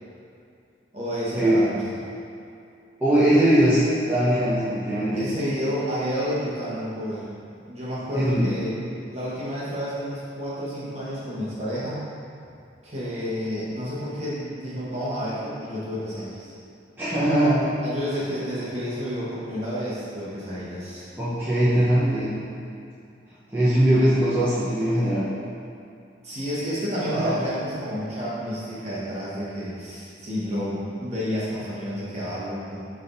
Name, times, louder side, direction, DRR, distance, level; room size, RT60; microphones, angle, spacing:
voice 1, 0.9-1.8 5.1-7.3 7.7-8.7 9.1-12.0 12.8-16.6 17.8-21.1 26.2-32.8, equal, 35° right, -9 dB, 1.5 m, -30 dB
voice 2, 3.0-5.3 8.1-8.5 17.0-17.7 21.2-22.3 23.5-25.3 27.1-27.4, right 1 dB, 10° right, -13 dB, 1.0 m, -21 dB
6.4 x 3.6 x 4.0 m, 2.5 s
head